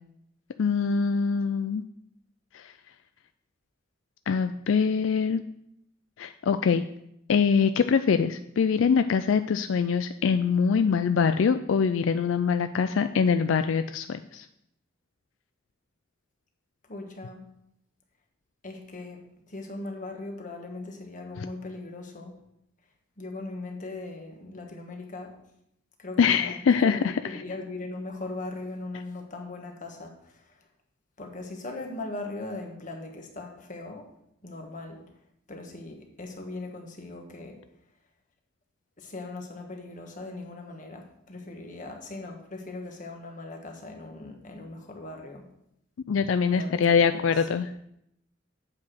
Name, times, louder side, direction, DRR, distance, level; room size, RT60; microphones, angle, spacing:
voice 1, 0.6-1.8 2.5-2.7 4.3-5.4 6.2-6.8 7.3-14.5 26.2-27.2 46.1-47.7, left 6 dB, 85° left, 10 dB, 0.4 m, -23 dB
voice 2, 16.9-17.4 18.6-22.4 23.2-25.4 26.0-30.7 31.2-34.1 34.4-35.1 35.5-37.6 39.0-45.5 46.4-47.2 47.5-47.6, left 2 dB, 40° left, 2 dB, 1.4 m, -39 dB
8.5 x 5.0 x 6.2 m, 0.77 s
head